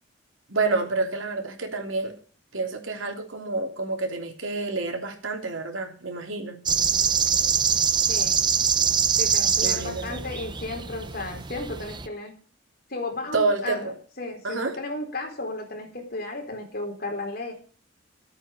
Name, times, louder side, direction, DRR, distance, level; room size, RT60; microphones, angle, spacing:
voice 1, 0.5-2.2 2.5-6.6 9.6-10.2 13.3-14.0 14.4-14.8, right 3 dB, 85° right, 4 dB, 3.2 m, -28 dB
sound 1, 6.7-12.1, right 7 dB, 25° right, 0.6 m, -24 dB
voice 2, 8.1-8.4 9.2-12.3 12.9-13.9 14.2-17.5, left 2 dB, 50° left, 3 dB, 3.9 m, -34 dB
15.0 x 8.6 x 6.8 m, 0.43 s
head